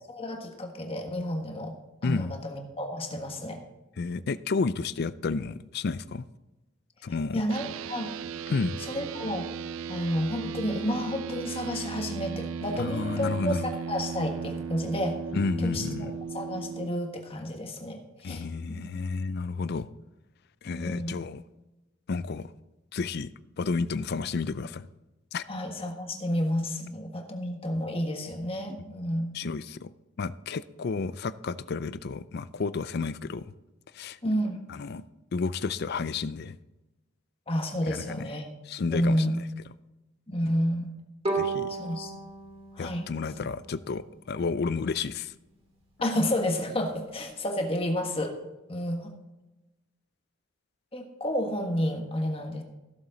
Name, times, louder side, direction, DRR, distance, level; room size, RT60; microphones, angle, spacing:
voice 1, 0.1-1.8 2.0-3.6 7.3-8.2 8.8-9.5 9.9-15.2 15.6-18.4 18.7-18.8 20.7-21.2 25.5-29.3 34.2-34.6 37.5-38.5 38.9-39.4 40.3-40.9 41.7-42.1 42.8-43.0 46.0-48.3 48.7-49.1 50.9-52.6, equal, 30° left, 3 dB, 1.5 m, -30 dB
voice 2, 4.0-6.2 7.0-7.4 8.5-8.8 12.8-13.6 15.3-16.1 18.2-19.9 20.6-21.4 22.1-22.5 22.9-23.3 23.6-24.9 25.3-25.4 29.3-29.9 30.2-33.5 33.9-34.2 34.7-35.0 35.3-36.6 37.9-38.2 38.7-39.3 41.3-41.7 42.8-45.3, left 4 dB, 50° left, 15 dB, 0.4 m, -31 dB
sound 1, 7.5-16.9, right 6 dB, 75° right, 0.3 m, -36 dB
Bowed string instrument, 41.2-44.3, right 4 dB, 30° right, 2.8 m, -34 dB
16.5 x 7.3 x 4.0 m, 1.0 s
head